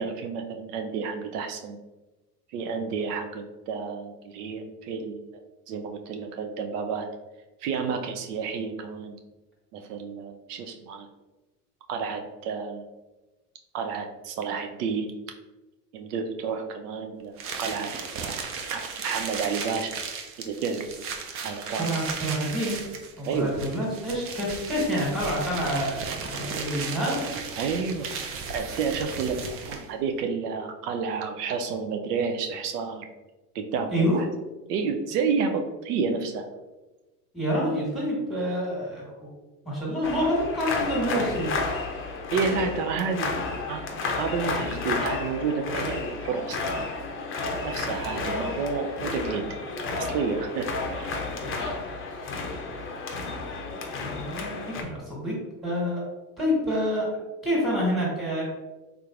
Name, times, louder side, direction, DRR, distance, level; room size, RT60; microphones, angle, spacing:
voice 1, 0.0-1.8 2.5-5.3 5.7-7.1 7.6-9.2 9.7-11.1 11.9-12.9 13.7-15.3 15.9-18.4 18.7-20.0 20.4-20.9 21.4-21.9 23.3-23.5 27.6-28.1 28.5-33.1 33.5-34.3 34.7-36.5 42.3-46.9 47.6-49.4 50.0-51.1 51.6-51.8, right 5 dB, 80° right, 5 dB, 0.6 m, -30 dB
sound 1, 17.4-30.0, right 5 dB, 30° right, 0.4 m, -35 dB
voice 2, 21.8-22.8 23.2-27.2 33.9-34.2 37.3-39.3 39.6-41.5 54.0-55.4 55.6-56.0 56.4-57.1 57.4-58.6, equal, ahead, -5 dB, 1.4 m, -27 dB
sound 2, 40.0-54.8, left 3 dB, 30° left, 0.5 m, -32 dB
3.5 x 3.0 x 2.4 m, 1.1 s
hypercardioid pair, 95°, 47 cm